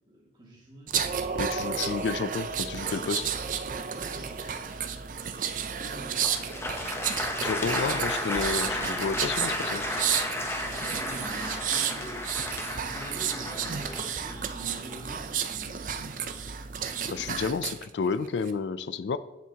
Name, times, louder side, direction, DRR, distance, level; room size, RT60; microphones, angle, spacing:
voice 1, 0.1-0.9 3.9-4.9 5.3-6.2 10.9-12.2 12.8-16.1, right 1 dB, 25° right, -4 dB, 2.2 m, -47 dB
sound 1, 0.9-17.8 18.2-18.5, right 7 dB, 50° right, 0.5 m, -32 dB
voice 2, 1.3-3.3 7.4-9.9 17.1-19.2, left 5 dB, 90° left, 14 dB, 0.4 m, -31 dB
Applause, 6.2-15.2, left 1 dB, 15° left, 0.8 m, -33 dB
9.2 x 7.5 x 2.9 m, 1.1 s
head